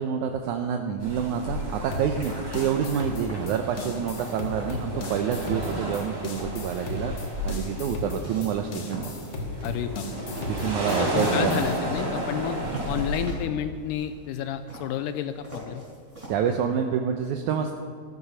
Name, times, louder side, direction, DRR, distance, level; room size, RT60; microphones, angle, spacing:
voice 1, 0.0-7.2 7.4-9.1 10.6-11.7 12.6-12.8 16.3-17.7, right 8 dB, 75° right, 5 dB, 1.9 m, -28 dB
sound 1, 1.0-13.3, right 1 dB, 40° right, 4.7 m, -32 dB
sound 2, 1.9-11.8, left 2 dB, 65° left, 2.8 m, -36 dB
sound 3, 2.8-16.4, right 1 dB, 10° right, 4.6 m, -44 dB
voice 2, 9.6-10.1 11.0-12.6 12.9-15.8, left 10 dB, 80° left, 10 dB, 2.0 m, -30 dB
14.5 x 13.5 x 5.5 m, 2.1 s
omnidirectional pair, 4.0 m